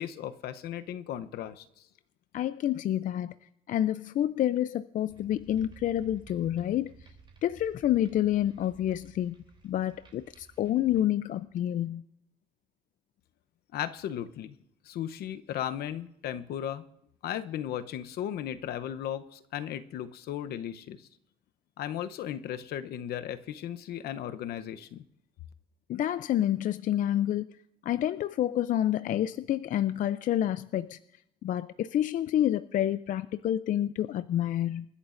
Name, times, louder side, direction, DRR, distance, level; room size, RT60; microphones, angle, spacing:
voice 1, 0.0-1.6 13.7-14.5 14.9-16.8 17.2-21.0 21.8-25.0, left 10 dB, 70° left, 11 dB, 0.8 m, -36 dB
voice 2, 2.3-3.3 3.7-7.1 7.4-9.4 9.6-12.0 25.9-27.5 27.8-31.0 31.4-34.9, left 12 dB, 50° left, 13 dB, 0.4 m, -28 dB
sound 1, 5.1-11.6, right 4 dB, 30° right, 3.1 m, -54 dB
28.0 x 11.0 x 2.6 m, 0.79 s
cardioid pair, 110°, 17 cm